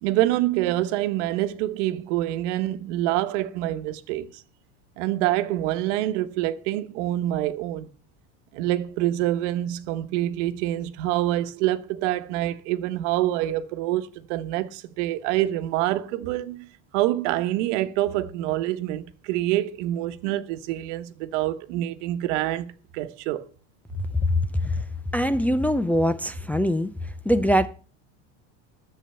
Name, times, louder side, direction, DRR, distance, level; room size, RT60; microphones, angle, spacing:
voice 1, 0.0-4.4 5.0-7.9 8.5-16.7 16.9-23.5, right 14 dB, 80° right, 1.2 m, -26 dB
voice 2, 25.1-26.9 27.3-27.7, equal, 5° left, 0.5 m, -22 dB
10.5 x 7.7 x 6.8 m
supercardioid pair, 135°, 36 cm